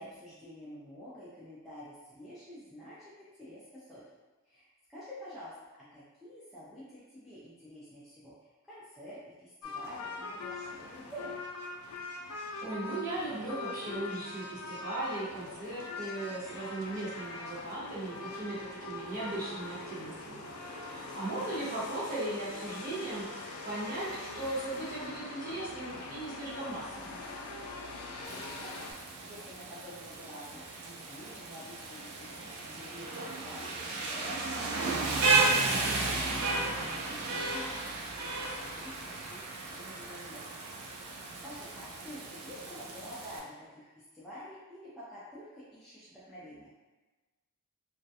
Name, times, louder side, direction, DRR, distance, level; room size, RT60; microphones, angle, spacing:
voice 1, 0.0-4.0 4.5-5.5 5.9-11.3 28.2-39.4 39.7-40.6 40.9-46.7, equal, ahead, -12 dB, 0.4 m, -49 dB
sound 1, 9.6-28.9, left 3 dB, 90° left, 0.4 m, -42 dB
voice 2, 12.6-20.4 20.8-27.2 35.6-36.0, right 2 dB, 40° right, -10 dB, 0.9 m, -38 dB
Rain, 28.2-43.4, right 3 dB, 80° right, 0.4 m, -34 dB
2.3 x 2.1 x 2.7 m, 1.2 s
head